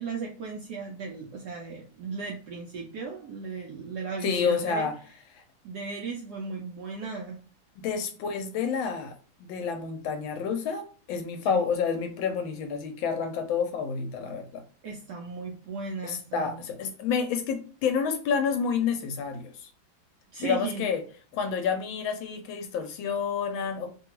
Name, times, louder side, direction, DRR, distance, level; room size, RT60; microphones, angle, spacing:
voice 1, 0.0-4.9 5.6-7.4 11.5-11.7 14.8-16.6 20.3-20.9, right 4 dB, 75° right, 1 dB, 0.9 m, -36 dB
voice 2, 4.2-4.9 5.3-5.4 7.8-14.6 16.0-19.7 20.4-21.0 21.3-23.9, left 6 dB, 75° left, 7 dB, 1.3 m, -29 dB
3.3 x 2.2 x 2.9 m, 0.39 s
omnidirectional pair, 2.2 m